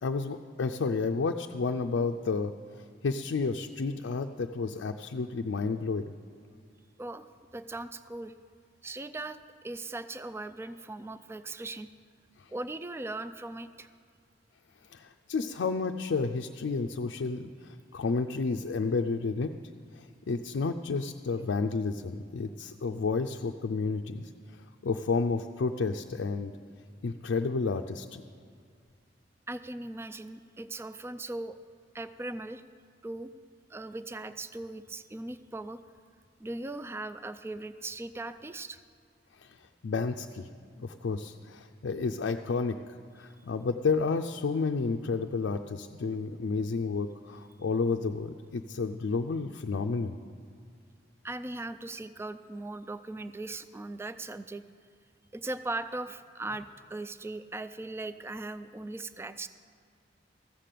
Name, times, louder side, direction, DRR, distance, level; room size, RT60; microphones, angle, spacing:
voice 1, 0.0-2.5 3.0-6.1 12.4-12.5 14.9-19.5 19.9-26.5 27.0-28.2 39.4-39.6 39.8-40.5 40.8-42.8 43.2-50.2, left 4 dB, 80° left, 4 dB, 0.4 m, -31 dB
voice 2, 7.0-8.3 8.8-11.9 12.5-13.9 29.5-31.6 31.9-32.6 33.0-33.3 33.7-35.8 36.4-38.8 51.2-54.6 55.3-59.5, right 2 dB, 15° right, 12 dB, 0.3 m, -39 dB
14.5 x 7.5 x 6.7 m, 2.2 s
head